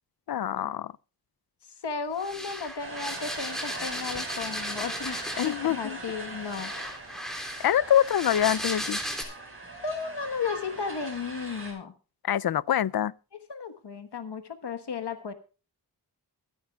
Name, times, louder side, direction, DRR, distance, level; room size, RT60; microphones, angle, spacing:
voice 1, 0.3-0.9 5.4-6.0 7.6-9.0 12.2-13.1, left 10 dB, 65° left, 0.5 m, -25 dB
voice 2, 1.6-6.7 9.8-11.9 13.5-15.3, left 5 dB, 90° left, 1.4 m, -34 dB
sound 1, 2.2-5.7 6.5-9.2, equal, ahead, 3.3 m, -35 dB
sound 2, 2.8-11.7, right 2 dB, 35° right, 4.9 m, -41 dB
22.5 x 9.9 x 2.3 m
wide cardioid pair, 80°, 39 cm